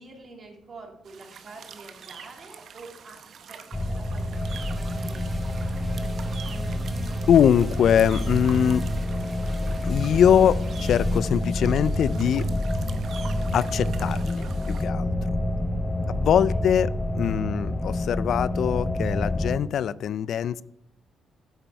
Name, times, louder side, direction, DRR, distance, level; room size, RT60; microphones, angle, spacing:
voice 1, 0.0-5.4 16.5-16.8, right 3 dB, 40° right, 1 dB, 2.6 m, -47 dB
sound 1, 1.1-14.8, right 7 dB, 60° right, 0.8 m, -45 dB
sound 2, 3.7-19.6, left 1 dB, 20° left, 0.6 m, -28 dB
sound 3, 4.3-11.2, right 2 dB, 20° right, 1.4 m, -44 dB
voice 2, 7.3-8.9 9.8-12.5 13.5-15.1 16.1-20.6, left 9 dB, 65° left, 19 dB, 0.3 m, -22 dB
8.1 x 7.7 x 4.6 m, 0.80 s
cardioid pair, 90°, 0 cm